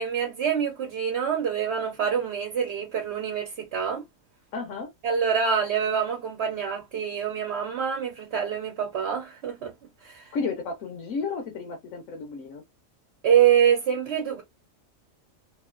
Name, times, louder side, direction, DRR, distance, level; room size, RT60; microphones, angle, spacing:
voice 1, 0.0-4.0 5.0-9.7 10.0-10.4 13.2-14.4, right 8 dB, 55° right, 1.0 m, -25 dB
voice 2, 4.5-4.9 10.3-12.6, left 4 dB, 75° left, 1.2 m, -32 dB
3.0 x 2.6 x 2.4 m
omnidirectional pair, 1.4 m